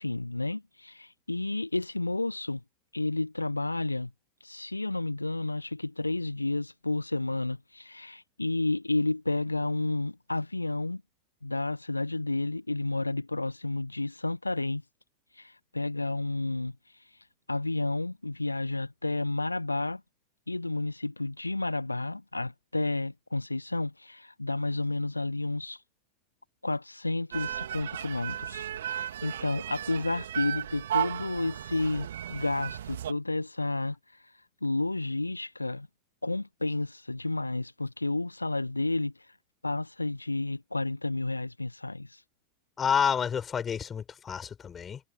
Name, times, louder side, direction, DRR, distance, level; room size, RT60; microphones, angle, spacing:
voice 1, 0.0-2.6 2.9-4.1 4.4-11.0 11.4-14.8 15.3-17.1 17.5-20.0 20.5-25.8 26.6-34.3 34.6-35.9 36.2-39.3 39.6-42.2, left 2 dB, 85° left, 1.3 m, -31 dB
sound 1, 27.3-33.1, right 10 dB, 60° right, 3.0 m, -35 dB
voice 2, 42.8-45.0, left 7 dB, 20° left, 4.5 m, -29 dB
figure-of-eight pair, 90°, 0 cm